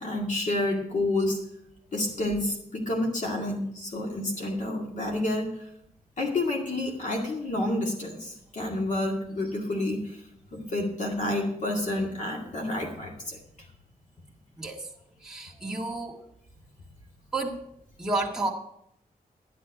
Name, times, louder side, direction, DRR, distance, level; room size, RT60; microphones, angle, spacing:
voice 1, 0.0-1.4 1.9-5.5 6.2-10.2 10.5-13.4, left 1 dB, 55° left, 0 dB, 2.2 m, -29 dB
voice 2, 14.6-14.9 15.2-16.2 17.3-17.6 18.0-18.5, right 2 dB, 5° right, -2 dB, 1.8 m, -31 dB
11.0 x 10.5 x 4.8 m, 0.76 s
wide cardioid pair, 175°, 15 cm